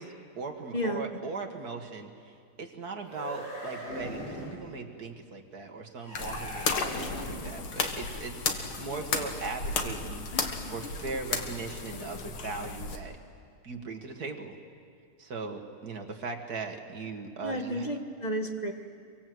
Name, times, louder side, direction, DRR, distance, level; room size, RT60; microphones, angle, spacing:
voice 1, 0.0-13.1 13.6-14.6 15.2-17.9, right 4 dB, 50° right, 4 dB, 2.1 m, -39 dB
voice 2, 0.7-1.1 17.4-18.7, equal, 25° left, 4 dB, 1.3 m, -32 dB
sound 1, 3.0-4.6 6.0-7.6, equal, 55° left, 8.9 m, -40 dB
sound 2, 6.1-13.0, left 4 dB, 75° left, 2.3 m, -34 dB
26.5 x 24.0 x 7.8 m, 2.2 s
omnidirectional pair, 2.4 m